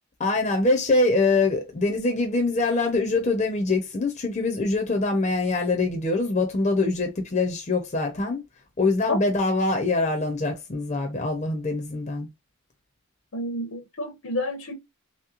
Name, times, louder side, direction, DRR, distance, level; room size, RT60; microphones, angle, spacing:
voice 1, 0.2-8.4 8.8-12.3, left 3 dB, 35° left, 0.6 m, -24 dB
voice 2, 13.3-14.7, left 1 dB, 80° left, 0.8 m, -29 dB
3.1 x 2.9 x 2.4 m
head